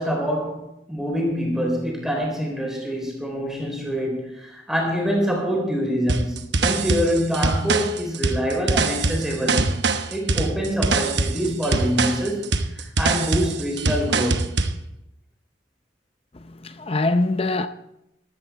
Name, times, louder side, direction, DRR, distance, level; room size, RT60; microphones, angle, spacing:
voice 1, 0.0-9.8 10.1-14.5, equal, ahead, 3.9 m, -25 dB
sound 1, 6.1-14.8, right 3 dB, 65° right, 1.0 m, -23 dB
voice 2, 16.3-17.7, left 2 dB, 30° left, 0.6 m, -23 dB
14.5 x 12.5 x 4.3 m
head